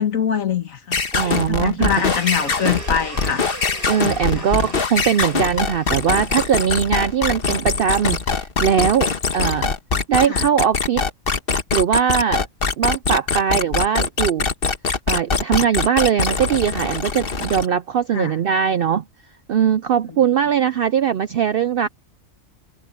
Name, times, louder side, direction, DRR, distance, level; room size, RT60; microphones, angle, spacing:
voice 1, 0.0-3.6 4.3-4.5 10.3-10.5 18.1-18.3, left 8 dB, 70° left, 1.9 m, -24 dB
sound 1, 0.9-17.7, left 4 dB, 45° left, 1.4 m, -22 dB
voice 2, 1.1-1.9 3.9-9.7 10.1-11.0 11.7-12.4 12.8-14.5 15.1-19.0 19.5-21.9, right 8 dB, 70° right, 0.5 m, -20 dB
sound 2, 1.9-6.9, right 1 dB, 40° right, 6.6 m, -37 dB
omnidirectional pair, 1.4 m